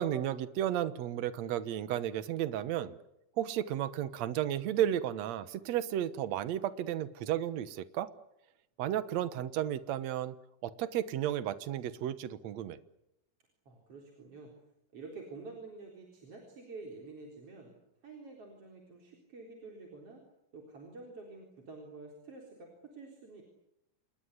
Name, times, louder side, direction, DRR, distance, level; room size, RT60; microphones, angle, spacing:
voice 1, 0.0-3.0 3.4-8.1 8.8-10.3 10.6-12.8, right 11 dB, 65° right, 14 dB, 2.1 m, -33 dB
voice 2, 13.7-14.5 14.9-17.7 18.0-20.2 20.5-23.4, right 3 dB, 45° right, 1 dB, 4.8 m, -49 dB
28.0 x 21.5 x 8.2 m, 0.83 s
omnidirectional pair, 3.8 m